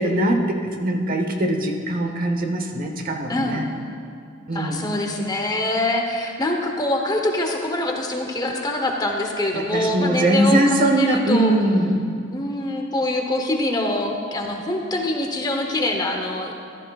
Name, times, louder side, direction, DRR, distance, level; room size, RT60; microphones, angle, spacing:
voice 1, 0.0-3.7 4.5-4.9 9.5-11.9, right 1 dB, 50° right, 3 dB, 1.0 m, -21 dB
voice 2, 3.3-3.7 4.5-11.5 12.3-16.6, left 1 dB, 20° left, 2 dB, 0.9 m, -24 dB
14.0 x 13.0 x 2.4 m, 2.3 s
head